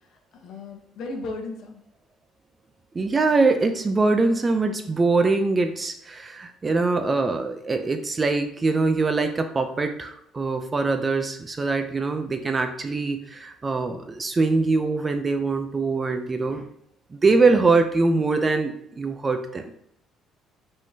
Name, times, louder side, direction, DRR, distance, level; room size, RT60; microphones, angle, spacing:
voice 1, 0.0-1.8, left 2 dB, 55° left, 3 dB, 0.8 m, -36 dB
voice 2, 2.9-16.6 17.1-19.7, right 3 dB, 20° right, 7 dB, 0.4 m, -23 dB
5.2 x 3.6 x 2.7 m, 0.72 s
cardioid pair, 155°, 0 cm